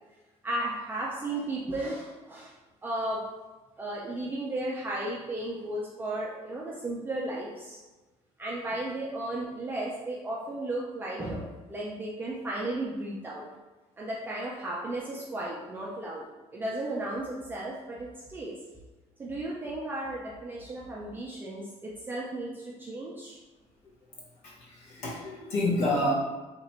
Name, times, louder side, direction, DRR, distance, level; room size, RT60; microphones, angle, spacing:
voice 1, 0.4-2.5 2.8-3.2 3.8-7.8 8.4-13.4 14.0-16.3 16.5-18.6 19.2-23.4, right 1 dB, 15° right, -5 dB, 0.4 m, -34 dB
voice 2, 24.4-26.1, left 1 dB, 65° left, -4 dB, 1.2 m, -28 dB
2.9 x 2.5 x 4.3 m, 1.2 s
cardioid pair, 165°, 12 cm